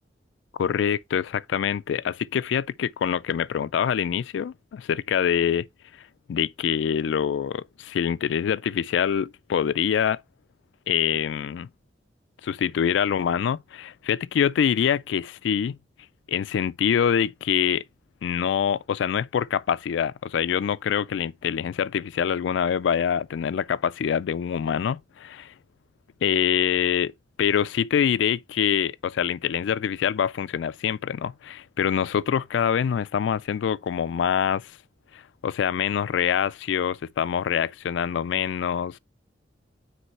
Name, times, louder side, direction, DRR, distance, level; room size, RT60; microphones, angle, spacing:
voice 1, 0.6-5.7 6.3-10.2 10.9-11.7 12.4-15.8 16.3-17.8 18.2-25.5 26.2-27.1 27.4-34.7 35.1-39.0, left 8 dB, 85° left, 0.3 m, -25 dB
7.7 x 3.2 x 4.2 m
head